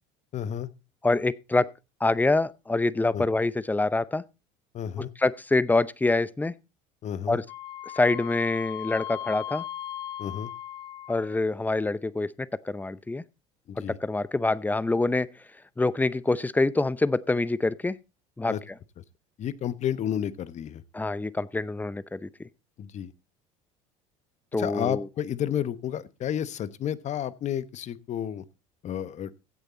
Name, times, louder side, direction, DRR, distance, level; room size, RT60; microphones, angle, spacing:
voice 1, 0.3-0.7 3.1-3.2 4.7-5.1 7.0-7.4 10.2-10.5 13.7-14.0 18.5-18.6 19.0-19.1 19.4-20.8 22.8-23.1 24.5-28.4 28.8-29.3, left 10 dB, 45° left, 1.1 m, -31 dB
voice 2, 1.0-1.7 2.0-4.2 5.0-6.5 7.3-7.4 7.9-9.6 11.1-13.2 13.8-15.3 15.8-18.0 18.4-18.6 20.9-22.5 24.5-25.1, left 2 dB, 10° left, 0.7 m, -26 dB
Wind instrument woodwind instrument, 7.5-11.4, left 12 dB, 75° left, 0.9 m, -37 dB
16.5 x 6.8 x 4.1 m
hypercardioid pair, 80°, 16 cm